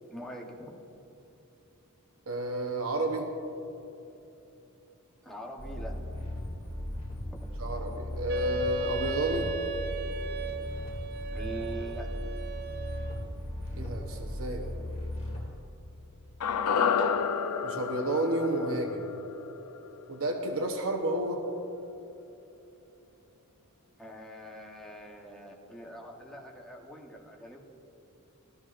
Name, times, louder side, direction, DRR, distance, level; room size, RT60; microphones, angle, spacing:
voice 1, 0.1-0.8 5.2-6.0 7.3-7.4 11.3-12.1 24.0-27.6, equal, ahead, -1 dB, 1.0 m, -43 dB
voice 2, 2.3-3.3 7.6-9.5 13.8-14.7 17.6-19.1 20.1-21.4, right 1 dB, 65° right, 3 dB, 0.9 m, -31 dB
sound 1, 5.6-15.4, left 1 dB, 30° left, 2.6 m, -37 dB
Wind instrument woodwind instrument, 8.3-13.3, right 7 dB, 45° right, 0.5 m, -37 dB
sound 2, 16.4-20.7 21.0-21.1, left 6 dB, 80° left, 0.5 m, -30 dB
13.5 x 13.0 x 2.5 m, 2.9 s
head